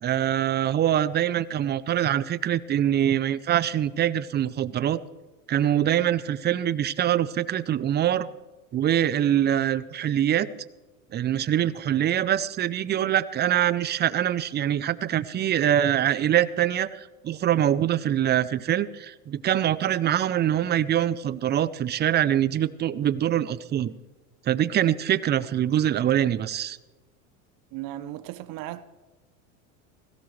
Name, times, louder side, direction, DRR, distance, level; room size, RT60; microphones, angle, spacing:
voice 1, 0.0-5.0 5.5-8.3 8.7-10.5 11.1-23.9 24.5-26.8, right 11 dB, 25° right, 0.5 m, -24 dB
voice 2, 27.7-28.8, right 14 dB, 55° right, 0.9 m, -36 dB
17.5 x 16.0 x 3.2 m
supercardioid pair, 105°, 41 cm